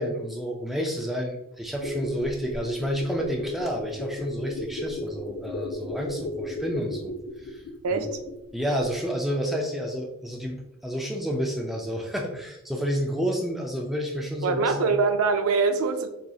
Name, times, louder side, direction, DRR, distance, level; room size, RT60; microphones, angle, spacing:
voice 1, 0.0-7.1 7.4-7.6 7.9-8.0 8.5-14.9, equal, ahead, 0.3 m, -30 dB
sound 1, 1.6-8.5 8.8-8.9, left 2 dB, 70° left, 0.5 m, -34 dB
voice 2, 7.8-8.2 14.4-16.1, right 4 dB, 80° right, 0.4 m, -23 dB
4.2 x 2.6 x 2.3 m
head